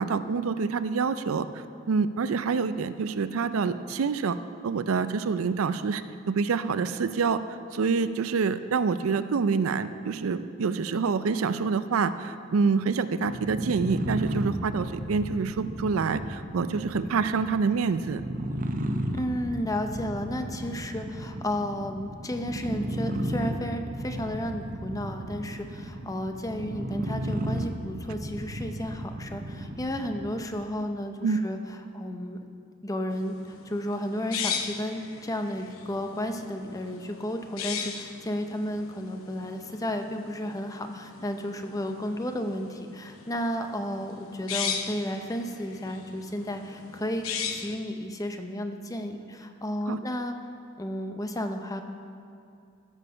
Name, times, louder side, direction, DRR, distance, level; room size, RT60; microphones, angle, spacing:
voice 1, 0.0-4.4 4.6-6.0 6.3-7.4 7.7-18.2 31.2-31.4 49.9-50.0, right 5 dB, 90° right, 12 dB, 0.4 m, -27 dB
sound 1, 13.2-30.5, right 1 dB, 40° right, 0.7 m, -34 dB
voice 2, 19.1-31.6 31.9-32.4 32.8-47.3 47.5-50.4 50.8-51.8, equal, 15° left, 6 dB, 0.6 m, -33 dB
sound 2, 33.1-47.8, left 7 dB, 85° left, 0.8 m, -38 dB
15.0 x 6.4 x 5.5 m, 2.5 s
head